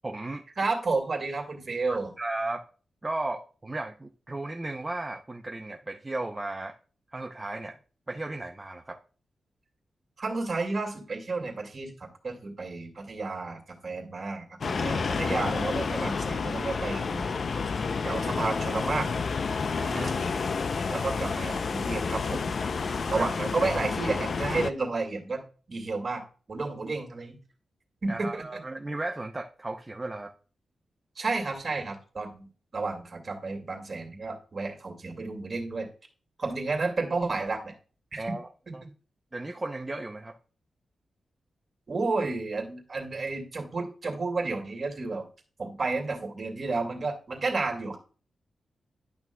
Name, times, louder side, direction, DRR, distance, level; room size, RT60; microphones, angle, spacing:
voice 1, 0.0-0.4 1.9-2.6 3.0-6.8 7.1-7.8 8.1-9.0 19.8-20.3 23.1-23.3 28.1-30.3 38.2-38.5 38.7-38.8 39.3-40.4, right 2 dB, 20° right, 3 dB, 0.6 m, -35 dB
voice 2, 0.6-2.1 10.2-17.3 18.0-19.1 19.9-20.4 20.9-22.5 23.1-25.4 25.7-26.2 26.5-27.4 28.0-28.6 31.2-32.5 32.7-35.9 36.4-37.7 38.1-38.3 38.7-38.9 41.9-45.3 45.6-48.0, right 3 dB, 45° right, 2 dB, 2.1 m, -31 dB
sound 1, 14.6-24.7, left 5 dB, 55° left, 0.5 m, -30 dB
11.0 x 6.0 x 2.2 m, 0.37 s
wide cardioid pair, 100°, 0 cm